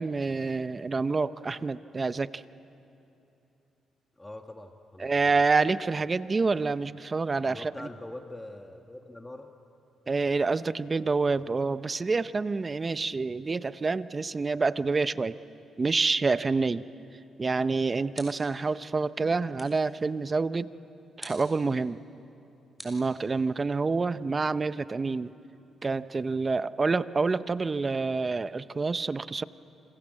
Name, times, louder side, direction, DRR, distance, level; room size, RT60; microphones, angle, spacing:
voice 1, 0.0-2.4 5.0-7.9 10.1-15.4 15.8-16.8 17.4-20.7 21.2-22.0 22.8-25.3 25.8-29.4, right 4 dB, 30° right, 15 dB, 0.6 m, -27 dB
voice 2, 4.2-5.4 7.4-9.5, left 1 dB, 15° left, 4 dB, 1.5 m, -43 dB
sound 1, 18.1-18.7 19.6-19.9 21.2-21.6 22.8-23.7, equal, 5° right, 6.4 m, -47 dB
28.0 x 27.5 x 7.6 m, 2.9 s
cardioid pair, 80°, 0 cm